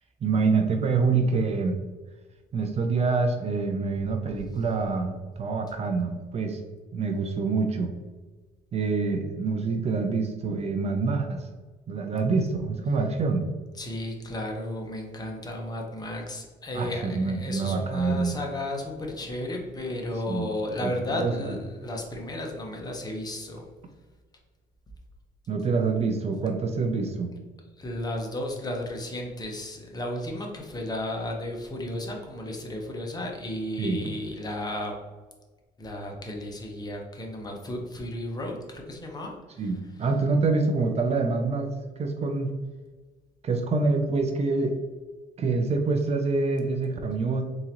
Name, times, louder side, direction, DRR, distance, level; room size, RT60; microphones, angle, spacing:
voice 1, 0.2-1.8 2.5-6.6 6.9-7.9 8.7-11.5 11.9-13.5 16.7-18.4 20.3-20.5 20.8-20.9 21.2-21.6 25.5-27.3 33.8-34.0 39.6-42.5 43.4-44.8 45.4-47.4, right 4 dB, 40° right, 5 dB, 0.5 m, -26 dB
voice 2, 13.8-23.7 27.8-34.9 35.8-39.7, left 1 dB, 25° left, 1 dB, 0.9 m, -33 dB
3.9 x 3.7 x 2.9 m, 1.3 s
cardioid pair, 110°, 17 cm